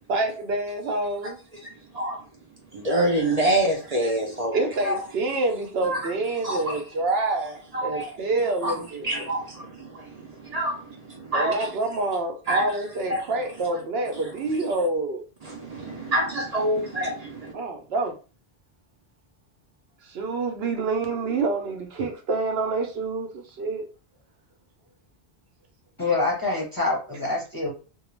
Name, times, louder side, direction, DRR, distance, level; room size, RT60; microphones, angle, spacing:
voice 1, 0.1-1.4 4.5-9.1 11.3-15.2 17.5-18.2 20.0-23.8, right 3 dB, 80° right, 0.9 m, -27 dB
voice 2, 1.6-2.2 2.7-5.0 5.8-6.1 6.4-6.8 7.7-8.1 8.6-11.7 12.5-12.7 13.1-13.3 14.1-14.7 15.4-17.5, right 1 dB, 45° right, 0.6 m, -27 dB
voice 3, 26.0-27.7, left 3 dB, 25° left, 0.7 m, -25 dB
2.3 x 2.2 x 3.0 m
omnidirectional pair, 1.1 m